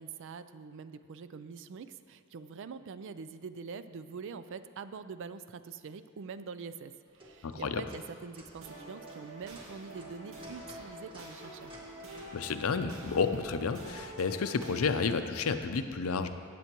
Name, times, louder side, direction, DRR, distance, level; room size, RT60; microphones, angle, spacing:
voice 1, 0.0-11.7, right 5 dB, 60° right, 12 dB, 0.4 m, -44 dB
sound 1, 7.1-13.6, right 1 dB, 25° right, 1.5 m, -55 dB
voice 2, 7.4-7.8 12.3-16.3, left 5 dB, 80° left, 9 dB, 0.5 m, -31 dB
sound 2, 8.6-15.5, right 1 dB, 85° right, 1.8 m, -47 dB
16.0 x 7.6 x 3.0 m, 2.1 s
head